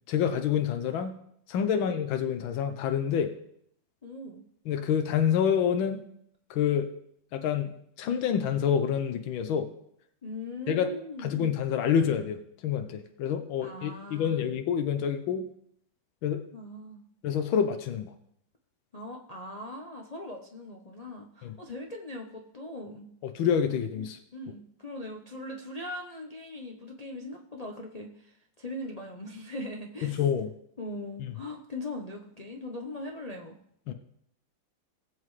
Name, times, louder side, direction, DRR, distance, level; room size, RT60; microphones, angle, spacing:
voice 1, 0.1-1.2 1.5-3.3 4.7-6.0 6.5-6.9 7.3-7.7 8.0-9.7 10.7-10.9 11.2-15.5 16.2-16.4 17.2-18.1 21.4-21.6 23.2-24.2 30.0-30.5 33.9-34.0, left 8 dB, 85° left, 7 dB, 1.5 m, -27 dB
voice 2, 4.0-4.4 10.2-11.4 13.6-14.5 16.5-17.0 18.9-23.1 23.9-24.0 24.3-30.2 30.8-33.6, left 1 dB, 50° left, 0 dB, 0.4 m, -40 dB
18.5 x 7.6 x 3.2 m, 0.71 s
omnidirectional pair, 2.1 m